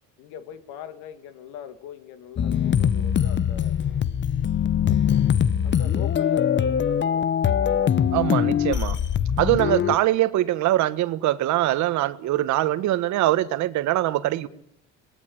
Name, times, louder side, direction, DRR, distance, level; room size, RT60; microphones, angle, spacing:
voice 1, 0.2-3.8 5.6-7.4, left 9 dB, 80° left, 2.5 m, -41 dB
sound 1, 2.4-10.0, left 9 dB, 40° left, 1.0 m, -22 dB
voice 2, 8.1-9.0 9.4-14.5, right 15 dB, 70° right, 1.5 m, -23 dB
26.5 x 19.0 x 8.6 m
cardioid pair, 100°, 30 cm